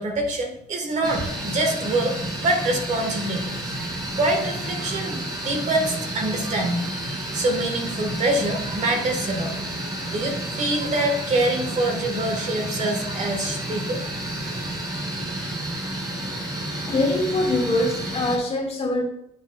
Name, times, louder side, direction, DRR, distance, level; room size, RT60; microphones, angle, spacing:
voice 1, 0.0-3.7 4.2-14.1, right 2 dB, 45° right, 3 dB, 1.5 m, -25 dB
sound 1, 1.0-18.4, right 1 dB, 25° right, 3.1 m, -30 dB
voice 2, 16.9-19.0, left 2 dB, 35° left, -1 dB, 2.2 m, -23 dB
8.1 x 7.3 x 2.4 m, 0.76 s
cardioid pair, 110°, 17 cm